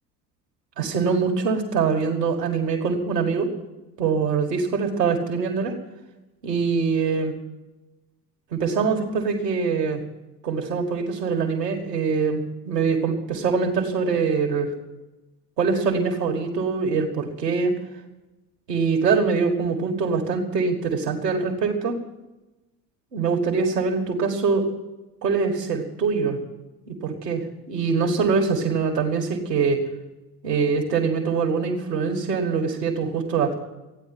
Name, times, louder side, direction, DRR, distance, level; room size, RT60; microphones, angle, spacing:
voice 1, 0.8-3.5 4.0-5.7 6.4-7.3 8.5-10.0 10.4-14.7 15.6-17.7 18.7-22.0 23.1-24.6 25.2-26.4 26.9-29.8 30.4-33.6, right 5 dB, 85° right, 2 dB, 2.0 m, -23 dB
14.5 x 9.7 x 9.0 m, 1.1 s
figure-of-eight pair, 60°, 48 cm